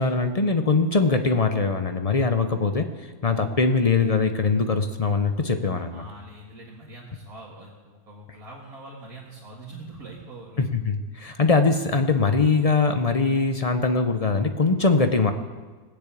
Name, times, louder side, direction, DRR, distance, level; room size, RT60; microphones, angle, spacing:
voice 1, 0.0-2.9 3.2-6.0 10.6-15.3, left 4 dB, 40° left, 7 dB, 0.5 m, -22 dB
voice 2, 5.9-10.7, right 2 dB, 65° right, -5 dB, 2.3 m, -43 dB
18.5 x 6.8 x 8.4 m, 1.4 s
omnidirectional pair, 1.7 m